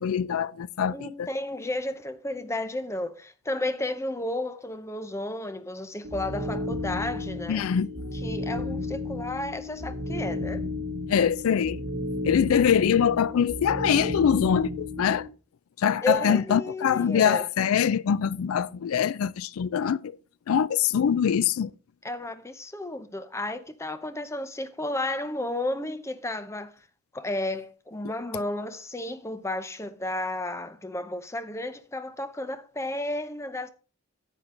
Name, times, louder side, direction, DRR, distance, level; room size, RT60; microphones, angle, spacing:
voice 1, 0.0-1.3 7.5-7.9 11.1-11.8 12.2-15.3 15.8-20.1 20.5-21.7, left 8 dB, 85° left, 0.4 m, -23 dB
voice 2, 0.9-7.6 8.2-10.6 16.0-17.5 22.0-26.7 27.1-33.7, left 1 dB, 15° left, 0.6 m, -32 dB
sound 1, 6.0-15.3, left 2 dB, 55° right, 1.3 m, -33 dB
10.5 x 8.2 x 3.7 m
head